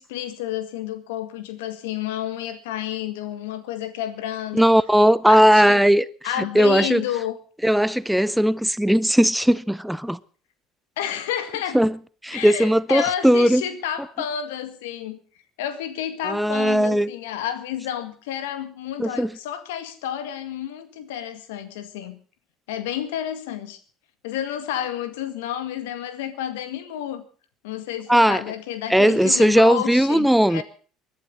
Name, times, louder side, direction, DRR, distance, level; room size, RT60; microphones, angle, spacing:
voice 1, 0.0-4.7 5.3-5.8 6.2-7.4 11.0-11.8 12.3-15.2 15.6-22.2 22.7-23.8 24.2-27.2 27.6-30.6, left 10 dB, 80° left, 1.9 m, -30 dB
voice 2, 4.5-6.1 6.4-7.0 7.6-10.2 11.7-12.0 12.2-13.6 16.2-17.1 19.0-19.3 28.1-28.4 28.9-30.6, equal, 5° right, 0.7 m, -18 dB
21.0 x 11.5 x 5.4 m
hypercardioid pair, 70°, 0 cm